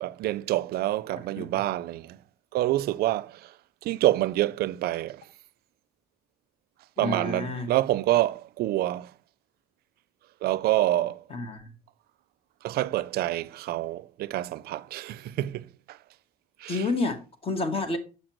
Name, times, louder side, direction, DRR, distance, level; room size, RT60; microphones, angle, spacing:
voice 1, 0.0-2.2 2.5-3.5 3.8-5.2 7.0-9.1 10.4-11.2 12.6-16.0 16.6-16.8, right 15 dB, 65° right, 0.4 m, -27 dB
voice 2, 7.0-7.7 11.3-11.7 16.7-18.0, left 3 dB, 35° left, 1.3 m, -30 dB
6.6 x 6.4 x 3.0 m
cardioid pair, 110°, 17 cm